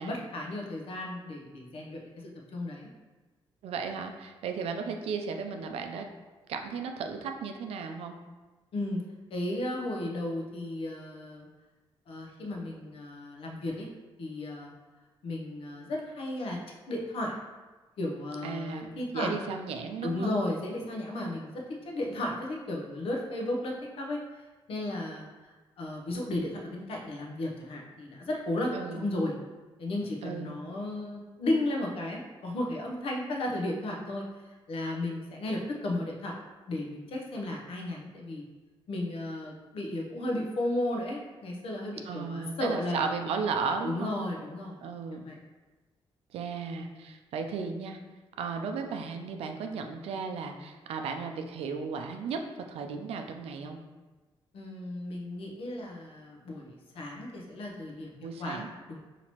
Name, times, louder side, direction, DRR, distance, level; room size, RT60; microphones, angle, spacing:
voice 1, 0.0-2.9 8.7-9.0 9.3-11.5 12.1-13.9 14.2-14.7 15.2-16.6 16.9-17.4 18.0-19.4 20.0-24.2 24.7-25.5 25.8-29.4 29.8-34.2 34.7-36.3 36.7-38.5 38.9-43.1 43.8-44.8 45.1-45.4 54.5-59.0, left 1 dB, 70° left, 0 dB, 0.7 m, -34 dB
voice 2, 3.6-6.1 6.5-8.1 18.4-20.3 28.7-29.1 30.2-30.5 42.0-44.3 44.8-45.3 46.3-48.0 48.4-52.4 52.7-53.8 58.2-58.7, right 5 dB, 85° right, 5 dB, 0.4 m, -35 dB
4.3 x 2.9 x 2.9 m, 1.2 s
cardioid pair, 110°, 10 cm